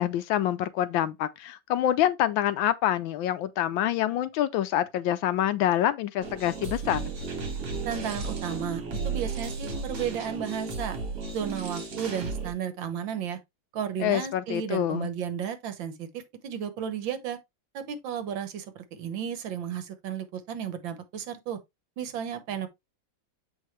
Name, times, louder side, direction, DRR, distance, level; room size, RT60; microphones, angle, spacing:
voice 1, 0.0-7.0 14.0-15.1, left 11 dB, 85° left, 1.4 m, -26 dB
sound 1, 6.2-12.5, right 4 dB, 55° right, 2.3 m, -34 dB
voice 2, 7.8-11.0 11.3-13.4 13.7-17.4 17.7-21.6 22.0-22.7, right 8 dB, 75° right, 1.7 m, -33 dB
7.2 x 4.6 x 3.1 m
omnidirectional pair, 2.1 m